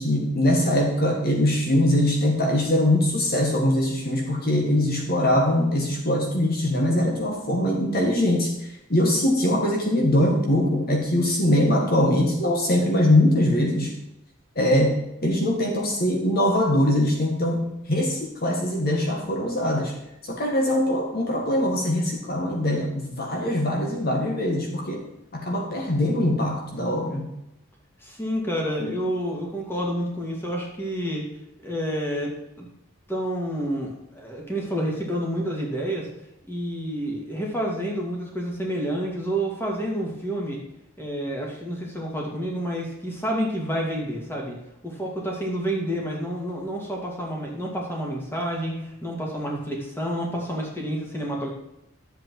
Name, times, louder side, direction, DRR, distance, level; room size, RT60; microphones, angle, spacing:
voice 1, 0.0-13.9 14.5-19.9 20.2-25.1 25.3-27.3, left 1 dB, 45° left, 1 dB, 1.7 m, -22 dB
voice 2, 28.0-31.3 31.6-32.7 33.1-36.1 36.5-40.6 41.0-44.5 44.8-51.5, equal, 10° left, -1 dB, 2.4 m, -29 dB
12.0 x 7.9 x 4.6 m, 0.84 s
head